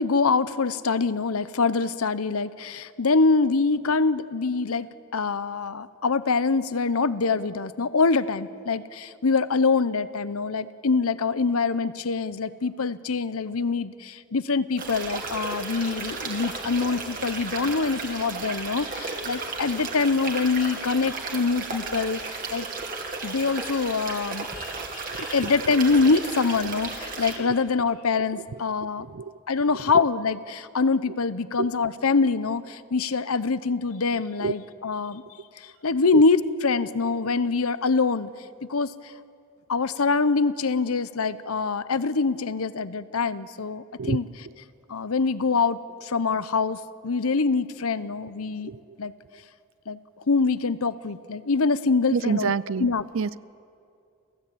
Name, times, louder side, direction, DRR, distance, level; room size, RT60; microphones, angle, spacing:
voice 1, 0.0-22.7 23.2-29.1 29.5-35.2 35.6-38.3 38.6-39.1 39.7-44.5 44.9-48.7 49.0-49.1 49.9-50.0 50.3-52.5 52.8-53.0, left 4 dB, 80° left, 15 dB, 0.8 m, -25 dB
Stream-tight in on little fall, 14.8-27.4, right 3 dB, 40° right, 2.5 m, -34 dB
voice 2, 52.1-52.9 53.1-53.4, right 5 dB, 60° right, 19 dB, 0.5 m, -26 dB
30.0 x 15.0 x 8.6 m, 2.5 s
head